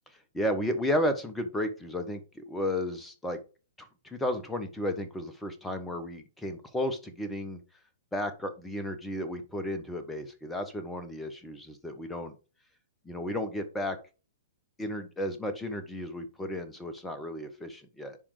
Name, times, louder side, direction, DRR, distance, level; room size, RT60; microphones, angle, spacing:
voice 1, 0.3-3.4 3.8-7.6 8.1-12.3 13.0-14.0 14.8-18.2, left 1 dB, 5° left, 8 dB, 1.2 m, -33 dB
10.0 x 3.6 x 4.9 m, 0.33 s
figure-of-eight pair, 110°, 0 cm